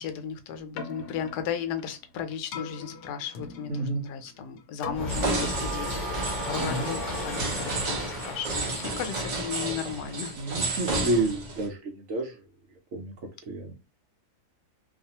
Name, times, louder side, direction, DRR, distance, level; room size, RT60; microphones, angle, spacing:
voice 1, 0.0-6.1 6.4-10.4 10.6-10.9, left 8 dB, 90° left, 1.1 m, -35 dB
Keyboard (musical), 0.6-8.8, left 4 dB, 70° left, 1.0 m, -44 dB
voice 2, 3.7-4.0 6.6-6.9 10.4-12.5 12.9-13.1 13.5-13.7, right 2 dB, 65° right, 0.8 m, -30 dB
sound 1, 4.9-10.1, left 1 dB, 35° left, 0.8 m, -35 dB
sound 2, 5.1-11.7, right 2 dB, 85° right, 0.3 m, -32 dB
2.6 x 2.3 x 2.7 m
omnidirectional pair, 1.7 m